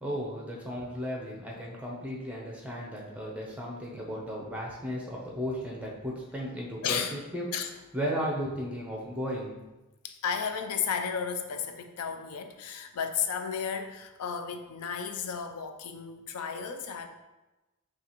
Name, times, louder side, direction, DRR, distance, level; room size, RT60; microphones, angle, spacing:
voice 1, 0.0-7.5 7.9-9.5, equal, 5° right, -3 dB, 0.6 m, -35 dB
voice 2, 6.8-7.2 7.5-7.7 10.0-17.1, left 6 dB, 90° left, 7 dB, 0.4 m, -33 dB
5.8 x 2.4 x 3.0 m, 1.1 s
head